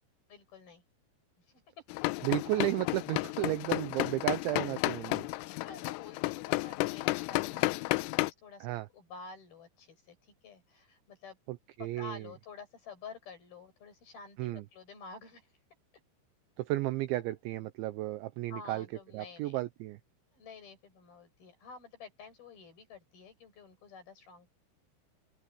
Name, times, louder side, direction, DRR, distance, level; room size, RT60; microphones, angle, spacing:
voice 1, 0.3-0.8 1.4-1.9 5.6-11.4 11.8-15.5 18.5-19.6 20.3-24.5, left 4 dB, 45° left, 8.0 m, -50 dB
sound 1, 1.9-8.3, left 22 dB, 85° left, 3.1 m, -32 dB
voice 2, 2.2-5.3 8.6-8.9 11.5-12.3 14.4-14.6 16.6-18.9 19.1-20.0, right 16 dB, 80° right, 2.7 m, -33 dB
open air
omnidirectional pair, 5.9 m